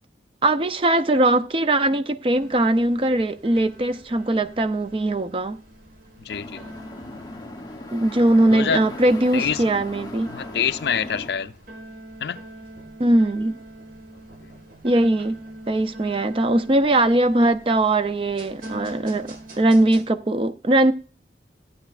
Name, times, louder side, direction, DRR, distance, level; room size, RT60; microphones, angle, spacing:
voice 1, 0.4-5.6 7.9-10.3 13.0-13.6 14.8-15.4 15.7-20.9, right 1 dB, 30° right, 0.5 m, -20 dB
sound 1, 2.3-20.0, right 1 dB, 50° right, 1.5 m, -43 dB
voice 2, 6.2-6.6 8.5-8.8 9.3-9.6 10.3-11.5 12.2-12.4, left 7 dB, 70° left, 0.4 m, -26 dB
sound 2, 6.3-11.3, left 2 dB, 25° left, 0.8 m, -37 dB
14.0 x 8.7 x 2.4 m
head